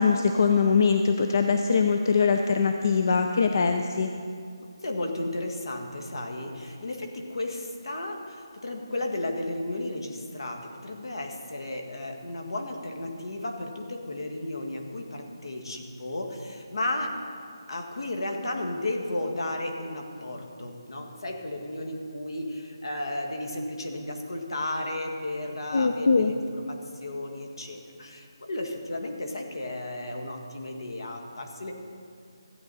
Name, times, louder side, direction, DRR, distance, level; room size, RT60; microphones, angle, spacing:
voice 1, 0.0-4.1 25.7-26.3, left 5 dB, 45° left, 5 dB, 0.5 m, -22 dB
voice 2, 4.8-17.1 17.7-31.7, left 1 dB, 70° left, 3 dB, 1.7 m, -34 dB
14.5 x 9.1 x 4.1 m, 2.3 s
figure-of-eight pair, 170°, 3 cm